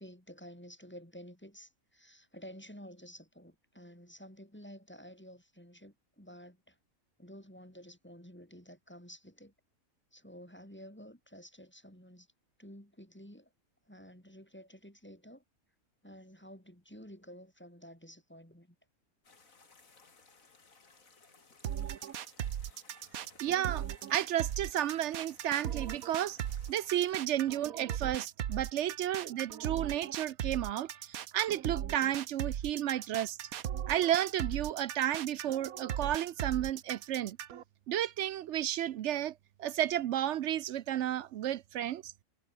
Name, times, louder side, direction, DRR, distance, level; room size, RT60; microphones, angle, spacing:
voice 1, 0.0-6.8 7.2-9.5 10.1-12.3 12.6-13.5 13.9-15.4 16.0-18.8, equal, 10° left, 3.5 m, -51 dB
sound 1, 19.2-27.1, left 4 dB, 75° left, 3.1 m, -61 dB
sound 2, 21.6-37.6, right 10 dB, 90° right, 1.4 m, -38 dB
voice 2, 23.4-23.8 24.1-26.4 26.7-30.9 31.3-33.4 33.9-37.4 37.9-39.3 39.6-42.1, right 11 dB, 65° right, 0.8 m, -32 dB
omnidirectional pair, 1.4 m